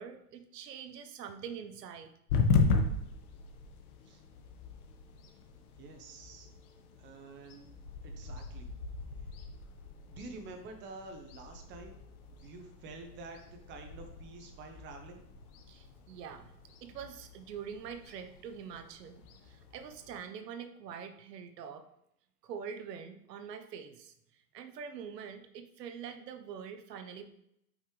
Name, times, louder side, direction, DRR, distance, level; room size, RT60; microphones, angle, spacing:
voice 1, 0.0-2.1 15.7-16.5 16.8-21.9 22.4-27.4, right 7 dB, 80° right, 8 dB, 1.0 m, -45 dB
sound 1, 2.3-20.2, left 4 dB, 60° left, 1.2 m, -37 dB
voice 2, 5.8-6.5 7.0-7.7 8.0-8.7 10.1-12.0 12.3-15.2, right 3 dB, 25° right, 4 dB, 0.9 m, -48 dB
8.0 x 5.8 x 3.2 m, 0.75 s
supercardioid pair, 145°, 48 cm